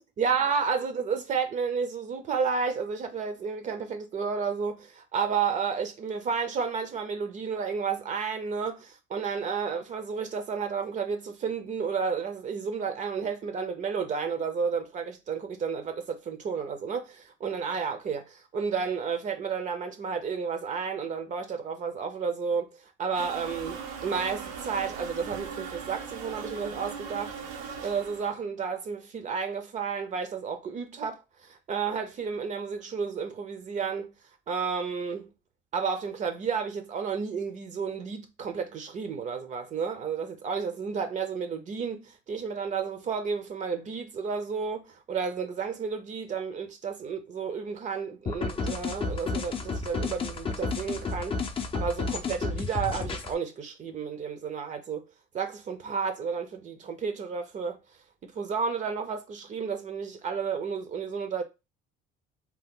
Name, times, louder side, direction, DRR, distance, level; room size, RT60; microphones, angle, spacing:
voice 1, 0.0-27.3 27.8-31.2 31.5-34.1 34.5-35.3 35.7-51.3 51.7-55.0 55.3-57.8 58.2-61.4, right 6 dB, 40° right, 0.6 m, -31 dB
sound 1, 23.1-28.3, right 6 dB, 80° right, 0.8 m, -39 dB
sound 2, 48.3-53.3, left 4 dB, 25° left, 0.6 m, -31 dB
2.9 x 2.1 x 3.6 m
supercardioid pair, 105°, 20 cm